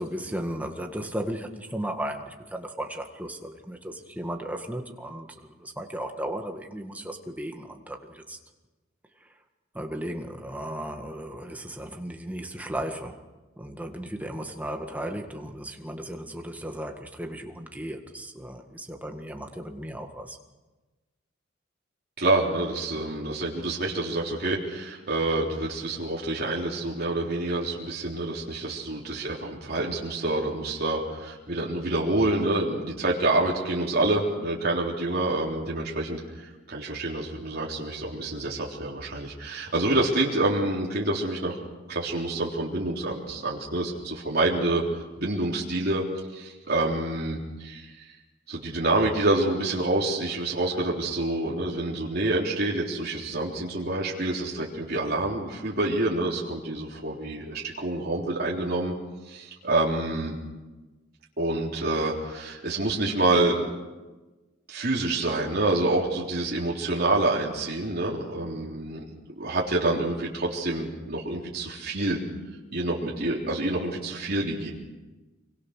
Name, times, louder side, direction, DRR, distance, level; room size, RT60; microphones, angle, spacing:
voice 1, 0.0-8.4 9.2-9.3 9.7-13.3 13.6-20.4, right 1 dB, 10° right, 4 dB, 1.9 m, -35 dB
voice 2, 22.2-41.6 41.9-46.0 46.3-48.2 48.5-58.9 59.3-60.4 61.4-63.6 64.7-69.0 69.4-72.2 72.7-74.7, right 2 dB, 55° right, -4 dB, 3.6 m, -27 dB
25.5 x 23.5 x 6.6 m, 1.2 s
head